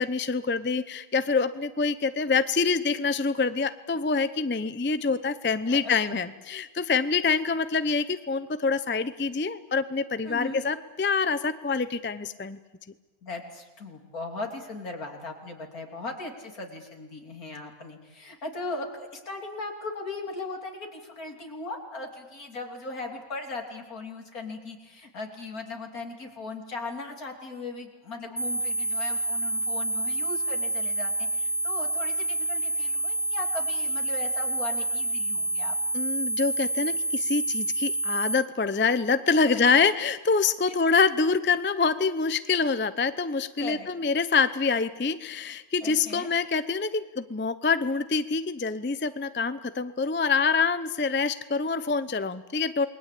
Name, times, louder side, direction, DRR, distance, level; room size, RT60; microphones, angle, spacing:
voice 1, 0.0-12.6 35.9-52.9, left 4 dB, 15° left, 12 dB, 0.5 m, -26 dB
voice 2, 5.7-6.2 10.3-10.6 13.2-35.8 39.4-39.8 40.7-40.8 43.6-43.9 45.8-46.3, left 3 dB, 75° left, 2 dB, 3.6 m, -38 dB
sound 1, 28.4-38.4, right 1 dB, 5° right, 2.3 m, -28 dB
28.5 x 21.0 x 8.4 m, 1.2 s
omnidirectional pair, 1.5 m